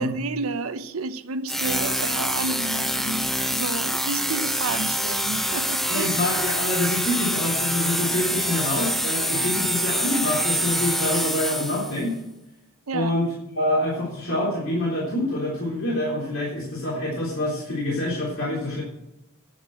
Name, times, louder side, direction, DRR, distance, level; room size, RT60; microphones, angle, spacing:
voice 1, 0.0-6.2 12.9-13.1, right 3 dB, 80° right, 0.8 m, -31 dB
sound 1, 1.5-12.0, equal, ahead, 0.7 m, -26 dB
voice 2, 5.9-12.1 12.9-18.8, left 1 dB, 70° left, 3.6 m, -26 dB
10.5 x 7.1 x 7.6 m
head